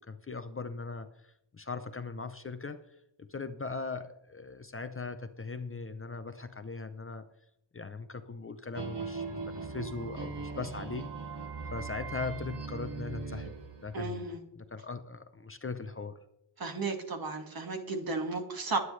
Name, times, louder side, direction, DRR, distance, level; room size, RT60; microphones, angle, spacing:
voice 1, 0.1-2.8 3.2-7.3 7.7-11.1 11.6-13.5 13.8-14.3 14.6-16.2, left 4 dB, 30° left, 9 dB, 0.6 m, -39 dB
sound 1, 8.7-14.3, right 4 dB, 65° right, 2.6 m, -40 dB
voice 2, 13.9-14.4 16.6-18.8, right 3 dB, 50° right, 4 dB, 1.9 m, -34 dB
21.5 x 9.5 x 3.2 m, 0.79 s
wide cardioid pair, 175°, 45 cm